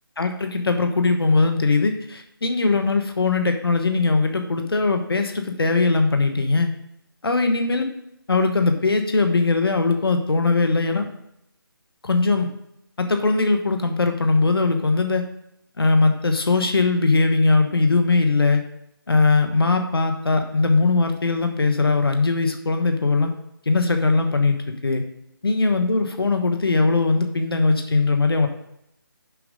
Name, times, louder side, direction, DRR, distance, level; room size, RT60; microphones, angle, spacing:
voice 1, 0.2-6.7 7.2-7.9 8.3-11.1 12.0-12.5 13.0-15.2 15.8-18.6 19.1-23.3 23.7-25.0 25.4-28.5, left 3 dB, 75° left, 6 dB, 1.2 m, -20 dB
6.8 x 5.1 x 5.1 m, 0.77 s
figure-of-eight pair, 160°, 12 cm